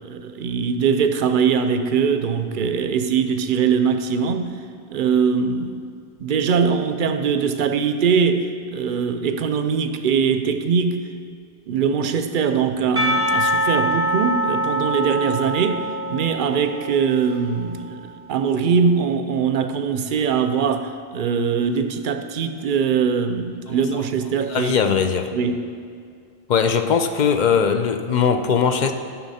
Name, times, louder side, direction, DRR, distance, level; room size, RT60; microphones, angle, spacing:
voice 1, 0.0-4.6 4.9-5.8 6.2-11.1 11.7-24.7 25.3-25.7, right 6 dB, 60° right, 0.6 m, -22 dB
Percussion, 13.0-17.8, equal, 15° left, 1.3 m, -24 dB
voice 2, 24.5-25.3 26.5-28.9, left 6 dB, 55° left, 0.6 m, -19 dB
11.5 x 6.0 x 4.2 m
omnidirectional pair, 1.1 m